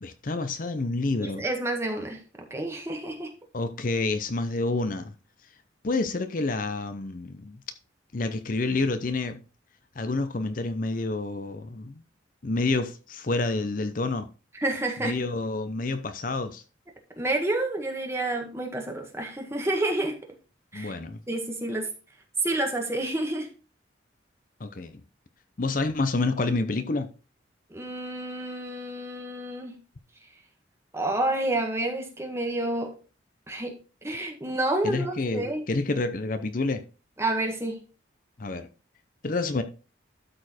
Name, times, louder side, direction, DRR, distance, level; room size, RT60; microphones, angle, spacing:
voice 1, 0.0-1.4 3.5-5.1 5.8-7.6 8.1-9.4 10.0-11.9 12.4-14.3 15.0-16.6 20.7-21.2 24.6-24.9 25.6-27.1 34.8-36.8 38.4-38.7 39.2-39.6, left 3 dB, 45° left, 0.7 m, -28 dB
voice 2, 1.2-3.3 14.5-15.1 17.2-20.1 20.7-20.9 21.3-21.9 22.4-23.5 27.7-29.7 30.9-32.9 33.5-35.6 37.2-37.8, right 1 dB, 15° right, 1.7 m, -29 dB
12.5 x 4.4 x 4.3 m
head